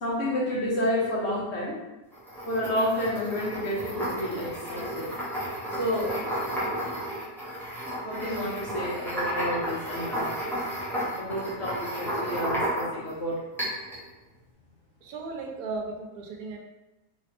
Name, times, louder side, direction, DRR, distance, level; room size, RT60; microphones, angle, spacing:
voice 1, 0.0-1.8 2.5-5.1 5.7-6.3 8.0-10.3 11.2-13.4, left 1 dB, 55° left, -5 dB, 1.0 m, -30 dB
sound 1, 2.1-13.1 13.6-14.0, equal, ahead, 0.7 m, -32 dB
voice 2, 15.0-16.6, right 3 dB, 85° right, 2 dB, 1.1 m, -36 dB
3.1 x 3.0 x 2.8 m, 1.0 s
omnidirectional pair, 1.6 m